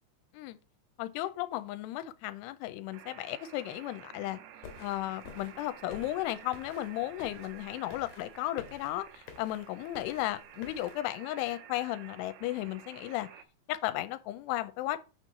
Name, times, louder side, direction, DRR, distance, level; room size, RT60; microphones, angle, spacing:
voice 1, 1.0-4.4 4.8-13.3 13.7-15.0, left 15 dB, 85° left, 2.7 m, -35 dB
sound 1, 2.9-13.5, right 10 dB, 85° right, 3.0 m, -52 dB
sound 2, 4.6-11.0, left 7 dB, 70° left, 2.4 m, -51 dB
6.6 x 4.6 x 5.8 m
omnidirectional pair, 4.8 m